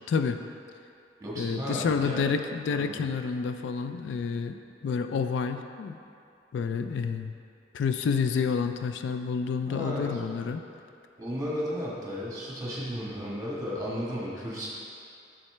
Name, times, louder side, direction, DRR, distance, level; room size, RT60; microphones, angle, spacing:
voice 1, 0.1-0.4 1.4-6.0 6.5-7.3 7.7-10.6, left 5 dB, 70° left, 8 dB, 0.3 m, -29 dB
voice 2, 1.2-2.3 2.7-3.1 9.6-10.2 11.2-14.7, equal, 20° right, -5 dB, 1.4 m, -34 dB
7.2 x 6.5 x 3.3 m, 2.5 s
head